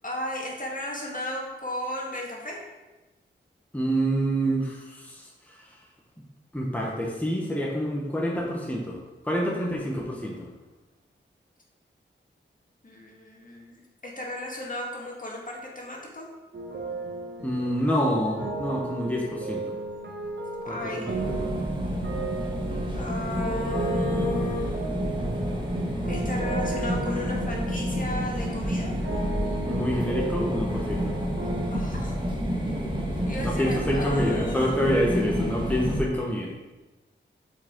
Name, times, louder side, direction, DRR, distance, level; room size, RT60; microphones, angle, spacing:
voice 1, 0.0-2.6 12.8-16.3 20.6-21.2 22.9-24.8 26.1-29.0 31.7-32.2 33.3-35.0, left 1 dB, 40° left, -2 dB, 1.7 m, -34 dB
voice 2, 3.7-5.7 6.5-10.5 17.4-19.7 20.7-21.5 29.6-31.1 33.4-36.5, equal, 5° left, -3 dB, 1.2 m, -27 dB
sound 1, 16.5-31.7, right 3 dB, 60° right, 1.2 m, -35 dB
sound 2, 21.1-36.0, equal, 25° right, 1.6 m, -29 dB
7.3 x 5.0 x 3.8 m, 1.1 s
cardioid pair, 60°, 20 cm